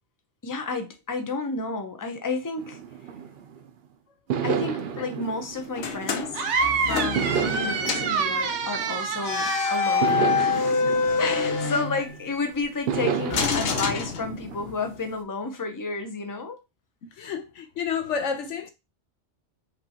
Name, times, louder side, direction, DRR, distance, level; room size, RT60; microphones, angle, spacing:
voice 1, 0.4-2.8 4.4-6.4 6.8-16.6, left 3 dB, 20° left, 0.6 m, -31 dB
sound 1, 2.6-3.7 4.3-6.6 7.2-9.4 10.0-12.3 12.9-15.0, right 7 dB, 65° right, 0.8 m, -31 dB
sound 2, 5.8-7.6 7.8-8.2 9.2-12.4 13.3-14.7, left 5 dB, 60° left, 1.0 m, -26 dB
sound 3, 6.3-10.7, right 5 dB, 90° right, 1.0 m, -28 dB
voice 2, 17.2-18.7, left 6 dB, 85° left, 1.1 m, -30 dB
5.2 x 3.0 x 2.8 m
omnidirectional pair, 1.2 m